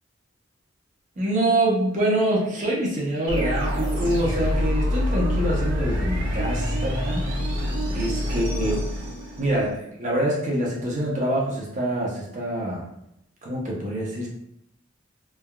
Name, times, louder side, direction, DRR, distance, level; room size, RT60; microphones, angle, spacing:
voice 1, 1.2-7.2 7.9-8.8 9.4-12.8 13.4-14.3, right 1 dB, 35° right, -3 dB, 0.6 m, -25 dB
sound 1, 3.3-9.7, equal, 80° right, 1.0 m, -26 dB
3.2 x 2.3 x 2.2 m, 0.79 s
head